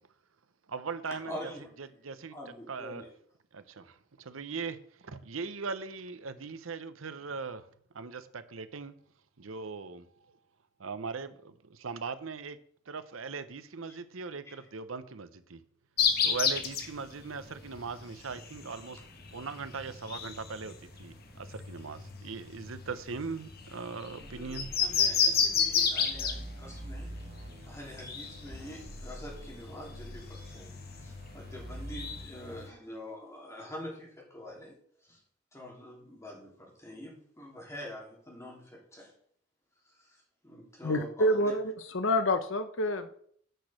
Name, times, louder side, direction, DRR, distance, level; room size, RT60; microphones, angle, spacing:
voice 1, 0.7-1.3 2.0-2.3 2.7-3.0 4.3-4.8 5.1-7.6 8.0-8.9 9.4-10.0 10.8-11.3 11.8-12.6 12.9-15.6 16.2-19.0 19.3-20.7 21.0-21.1 21.7-24.7, right 4 dB, 85° right, 0.8 m, -39 dB
voice 2, 1.2-1.9 2.3-3.1 13.9-14.0 14.4-14.7 24.1-27.1 27.6-30.7 31.0-34.7 35.0-35.2 35.5-39.1 39.8-40.2 40.4-41.5, left 1 dB, 15° left, 3.3 m, -45 dB
sound 1, 16.0-32.7, left 6 dB, 50° left, 1.4 m, -33 dB
sound 2, 24.2-32.3, right 1 dB, 55° right, 1.8 m, -46 dB
voice 3, 40.8-43.2, left 1 dB, 70° left, 0.8 m, -28 dB
9.2 x 6.2 x 6.4 m
head